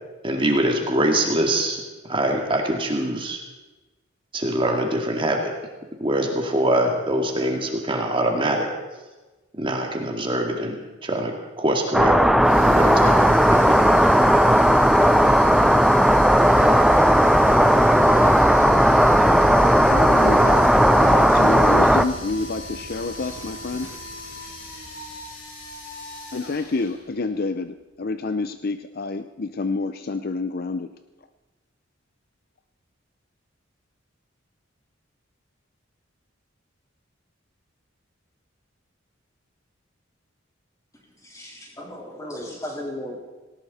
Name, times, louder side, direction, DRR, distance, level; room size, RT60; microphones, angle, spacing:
voice 1, 0.2-1.8 2.1-3.4 4.3-5.5 6.0-8.7 9.6-12.2 12.6-13.8, right 1 dB, 25° right, 2 dB, 2.2 m, -23 dB
sound 1, 11.9-22.0, equal, ahead, 0.5 m, -16 dB
sound 2, 12.4-27.3, left 2 dB, 80° left, 6.2 m, -39 dB
sound 3, 16.4-26.7, left 1 dB, 65° left, 1.5 m, -40 dB
voice 2, 19.8-23.9 26.3-30.9, left 3 dB, 50° left, 10 dB, 0.6 m, -28 dB
voice 3, 40.9-43.2, left 1 dB, 15° left, -2 dB, 4.0 m, -36 dB
18.5 x 18.5 x 4.2 m, 1.2 s
head